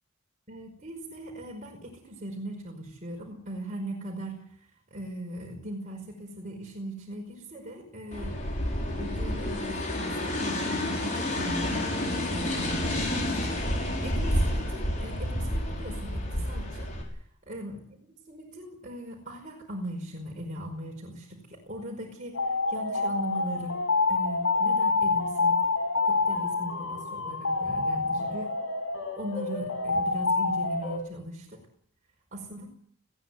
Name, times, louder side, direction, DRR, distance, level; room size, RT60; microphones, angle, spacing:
voice 1, 0.5-8.5 8.9-13.6 14.0-16.9 17.5-18.0 18.3-23.8 24.1-25.7 26.0-28.5 29.2-31.6 32.3-32.7, right 1 dB, 35° right, -1 dB, 5.2 m, -39 dB
sound 1, 8.1-17.0, left 1 dB, 35° left, 6.4 m, -29 dB
sound 2, 22.3-31.0, left 3 dB, 70° left, 5.8 m, -27 dB
20.5 x 16.5 x 9.8 m, 0.66 s
head